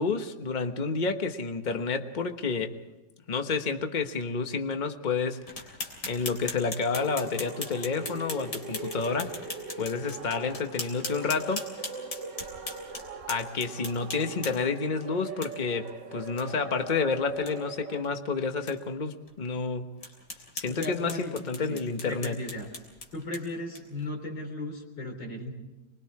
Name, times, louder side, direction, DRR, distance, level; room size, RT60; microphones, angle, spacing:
voice 1, 0.0-2.8 3.3-5.5 6.1-9.4 9.8-11.7 13.3-20.0 20.5-22.4, left 4 dB, 30° left, 6 dB, 1.2 m, -30 dB
sound 1, 5.5-14.8 15.4-15.5 15.9-16.0 16.4-16.5 16.8-16.9 17.3-17.5 18.0-18.1 18.7-18.8 19.3-19.4 20.0-24.0, left 2 dB, 65° left, 4.1 m, -40 dB
sound 2, 6.9-18.0, right 4 dB, 75° right, 2.1 m, -41 dB
voice 2, 20.7-21.8 22.0-22.7 23.1-25.5, left 1 dB, 90° left, 3 dB, 4.4 m, -36 dB
25.0 x 23.0 x 4.8 m, 1.1 s
omnidirectional pair, 1.9 m